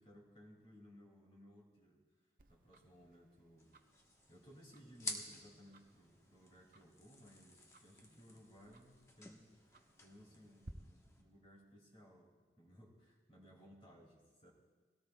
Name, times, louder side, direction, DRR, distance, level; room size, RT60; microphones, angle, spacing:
voice 1, 0.0-2.0 2.5-3.8 4.3-9.5 10.0-14.5, equal, 35° left, -2 dB, 2.3 m, -61 dB
Tick-tock, 2.4-10.7, right 2 dB, 50° right, 0.7 m, -63 dB
sound 1, 3.6-11.2, left 2 dB, 15° left, 1.0 m, -52 dB
21.0 x 17.5 x 2.2 m, 1.4 s
head